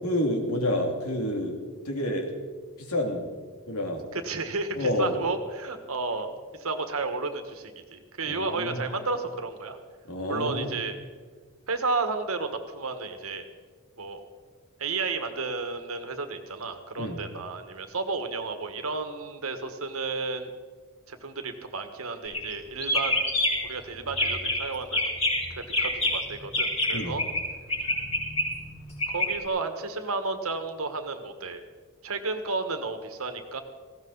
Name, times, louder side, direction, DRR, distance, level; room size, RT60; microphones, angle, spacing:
voice 1, 0.0-1.6 1.8-2.3 2.8-3.2 3.7-4.0 4.7-5.1 8.3-8.8 10.1-10.7 17.0-17.2 26.9-27.1, left 1 dB, 80° left, 2 dB, 2.7 m, -28 dB
voice 2, 4.1-9.8 10.3-11.0 11.7-13.4 14.0-14.2 14.8-20.5 21.1-23.2 23.6-25.0 25.5-27.2 29.1-31.6 32.0-33.6, right 3 dB, 70° right, 7 dB, 1.6 m, -32 dB
sound 1, 22.3-22.5 22.8-23.7 24.1-24.6 24.9-27.4 27.7-29.3, left 1 dB, 30° left, 5.2 m, -26 dB
19.0 x 16.0 x 4.1 m, 1.5 s
head